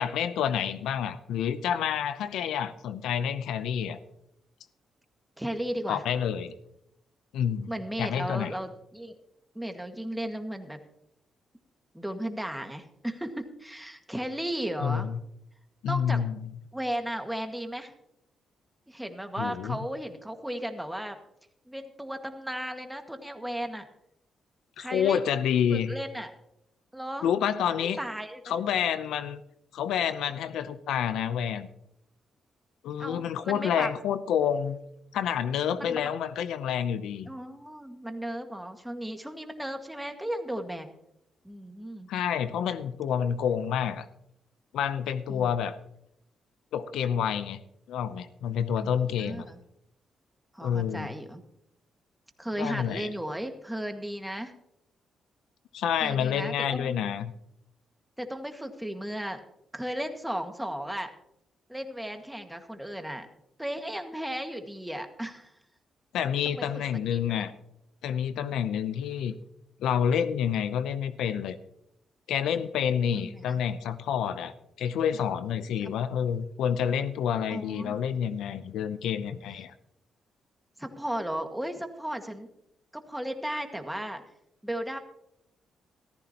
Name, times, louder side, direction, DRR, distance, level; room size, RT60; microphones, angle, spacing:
voice 1, 0.0-4.0 5.9-6.5 7.3-7.7 8.0-8.5 14.8-15.2 15.8-16.4 19.4-19.8 24.8-25.9 27.2-28.0 28.5-29.4 29.7-31.7 32.8-34.8 35.1-37.3 42.1-44.1 44.7-45.8 46.7-47.6 47.9-49.4 50.6-51.1 52.6-53.1 55.7-57.3 66.1-67.5 68.0-69.3 69.8-71.6 72.3-74.5 74.8-79.7, left 8 dB, 85° left, 12 dB, 0.6 m, -28 dB
voice 2, 5.4-6.0 7.7-9.2 9.6-10.8 11.9-15.1 15.8-16.2 16.7-17.9 18.9-21.2 21.7-23.9 24.8-25.2 25.7-26.3 26.9-27.3 28.0-28.6 33.0-33.9 35.8-36.1 37.3-40.9 41.4-42.1 45.3-45.5 48.8-48.9 49.2-49.6 50.5-51.4 52.4-54.5 56.0-57.0 58.2-59.4 59.7-61.1 61.7-63.3 63.6-65.5 66.4-66.8 67.1-67.5 73.2-73.6 75.8-75.9 77.5-78.0 80.8-82.5 82.9-84.2 84.6-85.0, right 1 dB, 5° right, 5 dB, 1.8 m, -35 dB
14.5 x 14.0 x 3.0 m, 0.80 s
cardioid pair, 65°, 0 cm